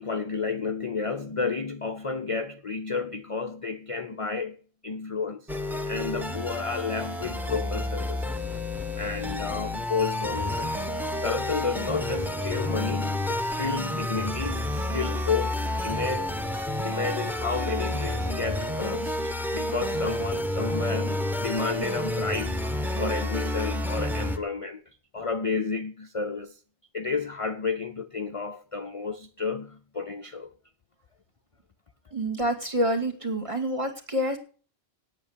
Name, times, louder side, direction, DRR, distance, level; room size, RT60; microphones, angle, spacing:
voice 1, 0.0-4.6 4.8-5.5 5.9-8.3 9.0-10.7 11.2-16.4 16.8-22.7 23.0-24.8 25.1-26.6 26.9-30.5, left 4 dB, 35° left, 0.6 m, -31 dB
sound 1, 5.5-24.4, left 1 dB, ahead, 1.2 m, -30 dB
voice 2, 32.1-34.4, equal, 30° right, 2.4 m, -27 dB
9.1 x 8.4 x 9.6 m
omnidirectional pair, 1.1 m